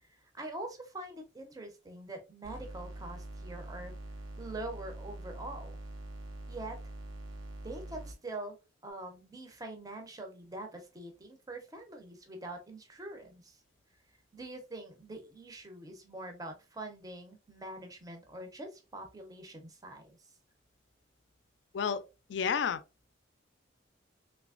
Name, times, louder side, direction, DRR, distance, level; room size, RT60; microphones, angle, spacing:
voice 1, 0.0-3.9 4.4-5.8 6.5-6.8 7.6-13.6 14.3-20.0, right 2 dB, 20° right, 0.6 m, -44 dB
sound 1, 2.4-8.2, right 2 dB, 85° right, 0.6 m, -44 dB
voice 2, 21.7-22.8, left 7 dB, 60° left, 0.3 m, -31 dB
3.2 x 3.0 x 2.4 m
head